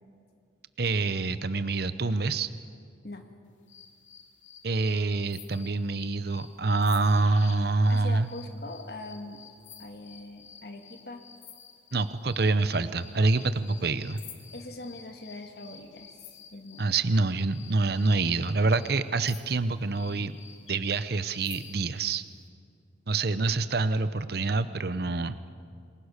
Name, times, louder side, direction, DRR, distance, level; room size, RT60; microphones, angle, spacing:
voice 1, 0.8-2.5 4.6-8.3 11.9-14.2 16.8-20.3 20.7-22.2 23.1-25.5, right 3 dB, 55° right, 12 dB, 0.7 m, -26 dB
sound 1, 3.7-16.9 17.5-22.2, left 8 dB, 75° left, 2.8 m, -51 dB
voice 2, 7.9-9.4 9.8-11.2 14.5-16.9, left 2 dB, 55° left, 5 dB, 1.7 m, -42 dB
27.5 x 21.0 x 6.6 m, 2.2 s
head